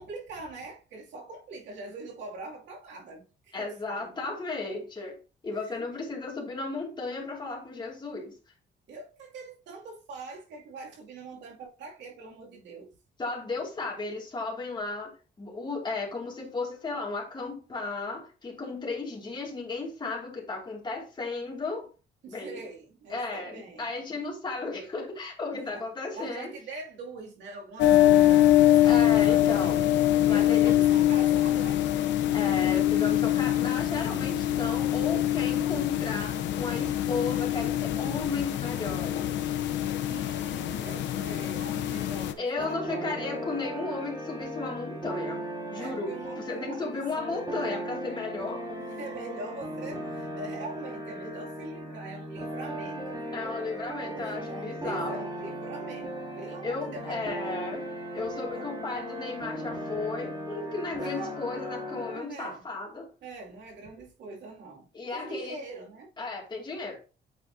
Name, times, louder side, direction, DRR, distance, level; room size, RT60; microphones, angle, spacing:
voice 1, 0.0-4.3 5.5-6.0 8.9-12.9 22.2-23.9 25.5-25.9 26.1-29.9 30.3-31.8 40.0-43.2 45.7-47.0 48.8-53.4 54.0-57.2 58.1-58.7 61.0-61.4 62.1-62.6 63.2-66.1, right 3 dB, 85° right, 2.6 m, -43 dB
voice 2, 3.5-5.2 5.4-8.3 13.2-15.1 15.4-21.9 22.3-22.6 23.1-26.5 28.8-29.8 30.2-30.7 32.3-39.3 42.4-45.4 45.7-46.1 46.4-48.7 53.3-55.2 56.6-57.9 58.1-63.1 64.9-65.6 66.2-67.0, left 3 dB, 25° left, 2.4 m, -34 dB
sound 1, 27.8-42.3, left 13 dB, 90° left, 0.8 m, -24 dB
sound 2, 42.6-62.2, equal, 25° right, 2.9 m, -37 dB
8.5 x 4.8 x 2.7 m
cardioid pair, 135°, 18 cm